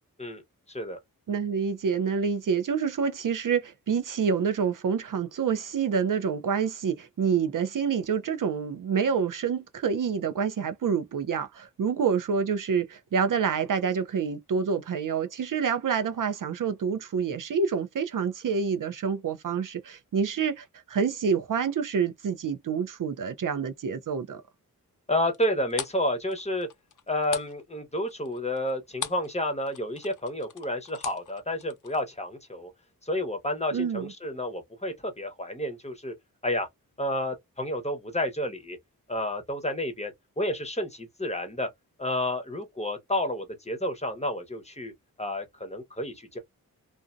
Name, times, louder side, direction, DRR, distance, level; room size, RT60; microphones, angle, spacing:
voice 1, 0.7-1.0 25.1-26.7 27.1-32.7 33.0-36.1 36.4-36.7 37.0-38.8 39.1-41.7 42.0-44.9 45.2-46.4, left 1 dB, 20° left, 0.9 m, -30 dB
voice 2, 1.3-24.4 33.7-34.1, right 6 dB, 60° right, 0.5 m, -27 dB
sound 1, 25.3-29.4 29.6-32.0, left 8 dB, 55° left, 0.6 m, -39 dB
2.5 x 2.1 x 2.5 m
cardioid pair, 60°, 36 cm